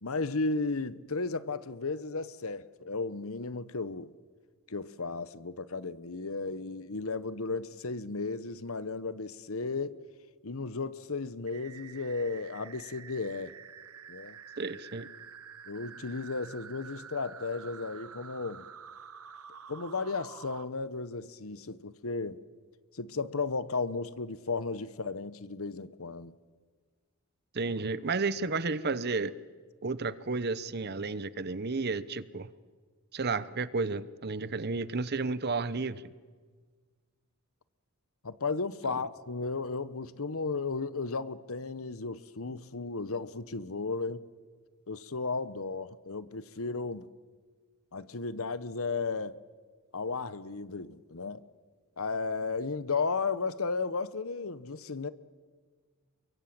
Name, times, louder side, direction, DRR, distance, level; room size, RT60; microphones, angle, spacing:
voice 1, 0.0-4.1 4.7-10.0 10.4-13.6 14.1-14.4 15.7-18.7 19.7-22.4 22.9-26.3 38.2-44.2 44.9-47.1 47.9-49.4 49.9-51.4 52.0-55.1, left 4 dB, 70° left, 1.0 m, -34 dB
sound 1, 11.5-20.6, right 7 dB, 80° right, 1.3 m, -49 dB
voice 2, 14.6-15.1 27.5-29.3 29.8-32.5 33.1-36.1 38.9-39.0, right 3 dB, 45° right, 0.9 m, -32 dB
30.0 x 22.5 x 8.8 m
head